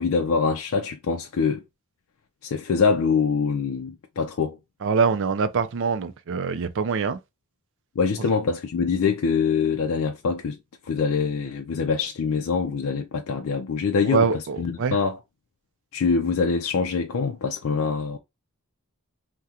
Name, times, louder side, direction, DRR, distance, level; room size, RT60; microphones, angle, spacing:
voice 1, 0.0-1.6 2.4-4.6 8.0-10.6 10.9-15.2 15.9-18.2, left 5 dB, 65° left, 0.4 m, -24 dB
voice 2, 4.8-7.2 14.1-15.0, right 5 dB, 60° right, 0.4 m, -24 dB
3.6 x 2.2 x 2.8 m
head